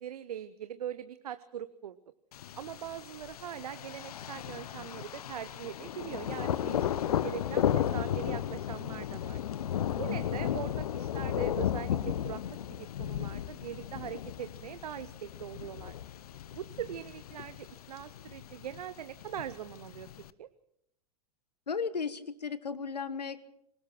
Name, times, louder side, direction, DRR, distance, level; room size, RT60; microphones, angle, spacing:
voice 1, 0.0-2.0 2.6-7.0 7.2-9.4 10.0-12.4 12.7-15.9 16.5-20.1 20.4-20.5, right 10 dB, 70° right, 13 dB, 0.8 m, -41 dB
Thunder, 2.3-20.3, left 10 dB, 65° left, 0.9 m, -35 dB
voice 2, 21.7-23.4, left 5 dB, 85° left, 15 dB, 1.4 m, -35 dB
25.5 x 18.0 x 6.0 m, 0.78 s
figure-of-eight pair, 95°, 20 cm